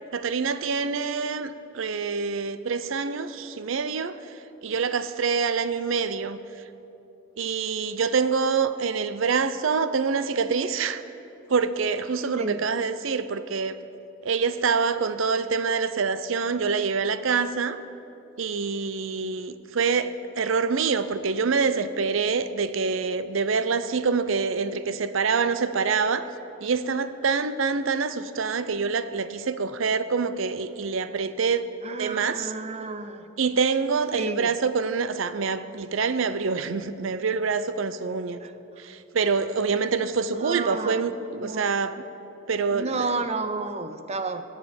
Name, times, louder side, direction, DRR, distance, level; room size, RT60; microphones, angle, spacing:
voice 1, 0.1-4.2 4.6-6.4 7.4-11.0 11.5-13.8 14.2-17.8 18.4-26.3 26.6-31.7 32.0-32.5 33.4-38.4 38.8-41.1 41.4-41.9 42.5-43.2, right 5 dB, 70° right, 13 dB, 0.6 m, -26 dB
voice 2, 31.8-33.3 34.1-34.5 38.4-38.5 40.3-41.0 41.3-41.7 42.7-44.4, right 3 dB, 30° right, 10 dB, 0.6 m, -31 dB
18.5 x 7.3 x 7.2 m, 2.8 s
head